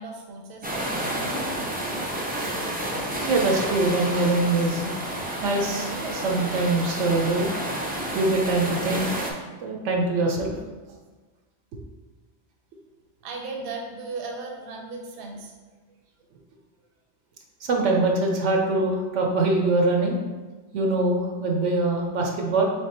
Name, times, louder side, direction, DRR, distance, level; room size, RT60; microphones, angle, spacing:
voice 1, 0.0-1.6 13.2-15.5, right 3 dB, 60° right, 1 dB, 0.8 m, -37 dB
sound 1, 0.6-9.3, right 1 dB, 15° right, 0.3 m, -30 dB
voice 2, 3.3-4.9 5.4-7.5 8.1-9.2 9.6-10.5 17.6-20.2 20.7-22.7, right 2 dB, 80° right, 1 dB, 1.0 m, -23 dB
3.6 x 3.4 x 4.2 m, 1.3 s
omnidirectional pair, 1.2 m